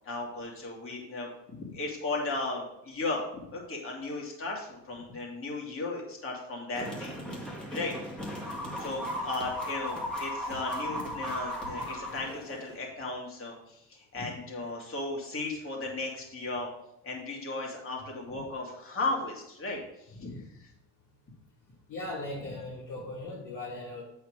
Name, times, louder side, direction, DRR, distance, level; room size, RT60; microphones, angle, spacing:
voice 1, 0.0-7.1 7.7-8.3 8.8-16.7 17.0-19.8 20.1-20.7, left 2 dB, 35° left, -2 dB, 2.7 m, -36 dB
sound 1, 6.7-12.8, equal, ahead, 2.1 m, -36 dB
voice 2, 21.9-24.0, left 2 dB, 50° left, -4 dB, 1.7 m, -38 dB
8.1 x 4.6 x 4.8 m, 0.81 s
hypercardioid pair, 60°, 39 cm